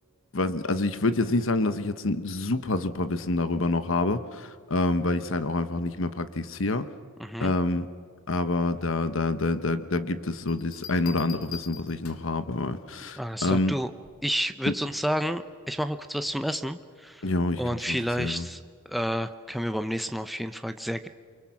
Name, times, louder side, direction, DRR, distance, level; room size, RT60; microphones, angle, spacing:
voice 1, 0.3-6.9 7.4-7.9 8.3-13.8 14.7-14.8 17.2-17.6 17.9-18.5, left 2 dB, 65° left, 11 dB, 1.1 m, -27 dB
voice 2, 7.2-7.5 13.2-13.9 14.2-17.2 17.6-18.6 18.9-21.1, equal, ahead, 8 dB, 0.7 m, -30 dB
Bell, 10.5-12.4 14.0-14.4, left 8 dB, 85° left, 2.2 m, -44 dB
29.0 x 24.0 x 6.0 m, 2.1 s
head